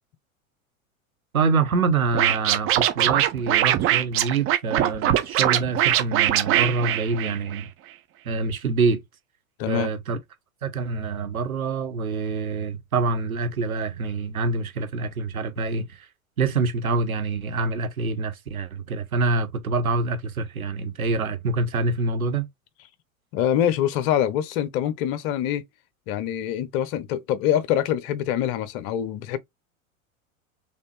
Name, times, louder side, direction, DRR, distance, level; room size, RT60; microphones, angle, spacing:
voice 1, 1.3-7.7 8.3-9.0 9.7-10.2 10.6-16.1 16.4-22.5, right 3 dB, 85° right, 0.9 m, -26 dB
Scratching (performance technique), 2.1-7.6, right 12 dB, 30° right, 0.7 m, -21 dB
voice 2, 9.6-9.9 23.3-25.6 26.1-29.4, left 11 dB, 45° left, 0.8 m, -25 dB
4.1 x 3.4 x 3.1 m
figure-of-eight pair, 90°, 41 cm